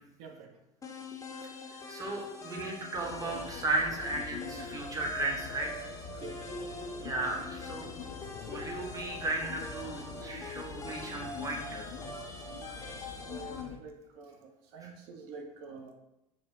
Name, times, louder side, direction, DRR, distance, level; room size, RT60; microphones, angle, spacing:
voice 1, 0.2-0.6 0.9-1.0 6.2-6.4 13.2-15.9, right 3 dB, 55° right, 3 dB, 0.7 m, -47 dB
sound 1, 0.8-13.6, left 2 dB, 15° left, 0.7 m, -44 dB
voice 2, 1.3-5.9 6.1-6.2 7.0-7.9 8.4-13.2 14.8-14.9, right 2 dB, 20° right, 0 dB, 0.8 m, -36 dB
sound 2, 2.9-13.8, left 6 dB, 55° left, 0.4 m, -45 dB
3.6 x 2.1 x 3.6 m, 0.90 s
figure-of-eight pair, 75°, 19 cm